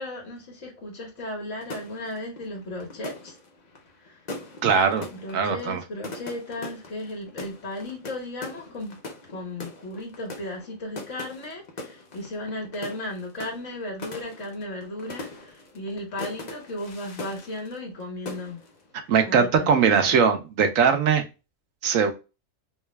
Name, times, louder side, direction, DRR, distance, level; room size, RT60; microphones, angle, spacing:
voice 1, 0.0-3.4 4.0-4.3 5.1-9.0 9.3-18.6 19.3-20.2, left 1 dB, 65° left, 1.7 m, -35 dB
sound 1, 1.6-18.0 18.3-18.8, left 2 dB, 40° left, 0.8 m, -41 dB
voice 2, 4.6-5.1 5.3-5.8 19.1-21.2 21.8-22.1, right 6 dB, 80° right, 1.1 m, -20 dB
3.7 x 2.4 x 3.1 m
omnidirectional pair, 1.4 m